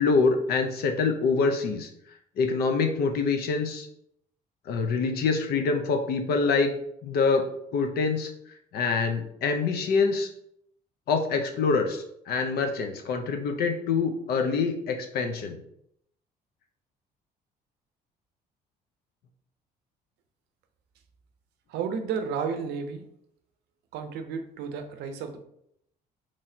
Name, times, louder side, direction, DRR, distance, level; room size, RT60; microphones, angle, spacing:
voice 1, 0.0-1.9 2.4-3.9 4.7-6.7 7.0-7.5 7.7-8.3 8.7-10.3 11.1-15.6, left 4 dB, 65° left, 5 dB, 0.6 m, -25 dB
voice 2, 21.7-23.1 23.9-25.4, right 6 dB, 80° right, 7 dB, 0.6 m, -32 dB
4.1 x 3.1 x 2.7 m, 0.73 s
cardioid pair, 110°, 17 cm